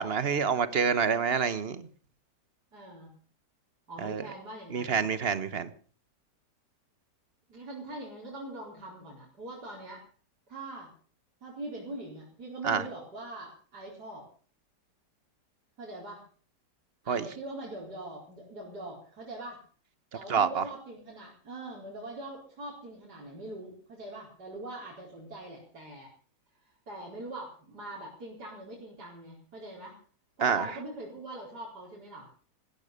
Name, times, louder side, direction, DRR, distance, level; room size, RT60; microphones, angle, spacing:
voice 1, 0.0-1.9 4.0-4.2 4.7-5.7 12.6-12.8 17.1-17.3 20.3-20.6 30.4-30.7, right 6 dB, 40° right, 1.2 m, -27 dB
voice 2, 2.7-3.1 3.9-5.1 7.5-10.0 10.5-10.9 11.4-14.3 15.8-16.2 17.0-19.6 20.1-26.1 26.9-30.0 30.4-32.3, right 2 dB, 70° right, 5.1 m, -42 dB
16.0 x 12.5 x 6.7 m
omnidirectional pair, 1.8 m